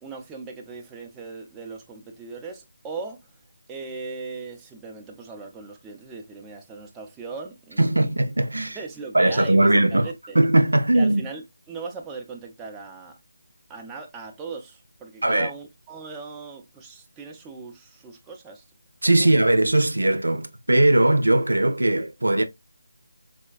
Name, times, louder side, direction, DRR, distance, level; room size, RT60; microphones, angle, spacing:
voice 1, 0.0-3.3 3.7-8.1 8.7-10.4 10.9-13.1 13.7-18.6 19.2-19.3, right 4 dB, 10° right, 0.4 m, -39 dB
voice 2, 7.8-8.8 9.1-10.1 10.4-11.2 15.2-15.5 19.0-22.4, right 1 dB, 80° right, 0.5 m, -19 dB
4.2 x 2.2 x 2.3 m
figure-of-eight pair, 160°, 0 cm